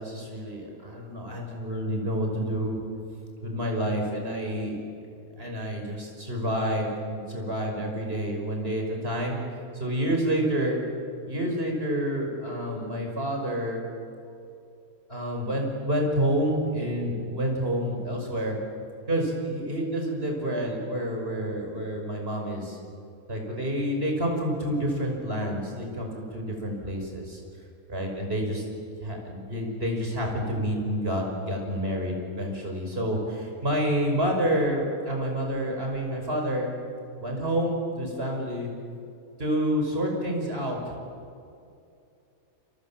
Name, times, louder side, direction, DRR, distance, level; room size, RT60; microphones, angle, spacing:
voice 1, 0.0-2.8 3.4-4.8 5.4-9.4 9.8-10.8 11.3-13.8 15.1-18.6 19.1-22.8 23.3-27.4 27.9-28.6 29.0-36.7 37.2-38.7 39.4-40.9, equal, 40° right, 1 dB, 5.9 m, -28 dB
30.0 x 24.0 x 7.5 m, 2.6 s
omnidirectional pair, 1.6 m